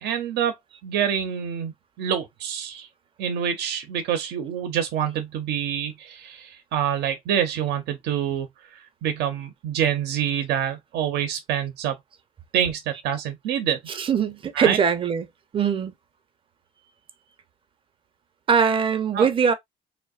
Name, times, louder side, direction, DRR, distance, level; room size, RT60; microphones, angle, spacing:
voice 1, 0.0-0.6 0.8-2.9 3.2-12.0 12.5-13.8 14.5-14.8 19.1-19.3, right 9 dB, 75° right, 0.5 m, -26 dB
voice 2, 13.9-15.3 15.5-15.9 18.5-19.5, right 6 dB, 30° right, 0.5 m, -21 dB
2.6 x 2.0 x 2.3 m
cardioid pair, 110°, 17 cm